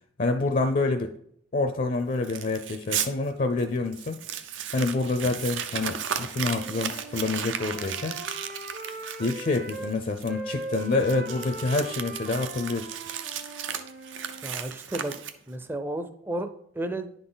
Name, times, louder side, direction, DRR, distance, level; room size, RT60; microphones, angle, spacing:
voice 1, 0.2-1.1 1.5-4.2 4.7-8.2 9.2-12.9, left 3 dB, 45° left, 6 dB, 0.5 m, -27 dB
Crumpling crinkling, 2.2-3.1 3.6-3.7 3.9-15.6, right 8 dB, 85° right, 0.6 m, -35 dB
Wind instrument woodwind instrument, 6.4-9.9 10.3-14.5, right 2 dB, 50° right, 0.8 m, -40 dB
voice 2, 14.4-15.1 15.5-16.5 16.7-17.1, right 1 dB, 10° right, 9 dB, 0.4 m, -32 dB
10.0 x 4.0 x 3.9 m, 0.68 s
head